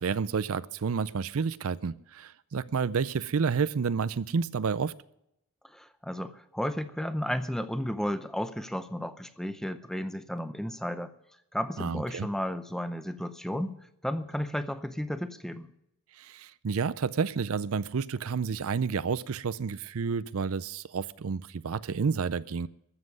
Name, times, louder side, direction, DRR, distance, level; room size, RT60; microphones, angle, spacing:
voice 1, 0.0-4.9 11.8-12.3 16.2-22.7, right 5 dB, 65° right, 0.5 m, -30 dB
voice 2, 5.7-11.1 11.5-13.7 14.0-15.7, equal, ahead, 0.6 m, -33 dB
14.0 x 7.6 x 9.6 m
head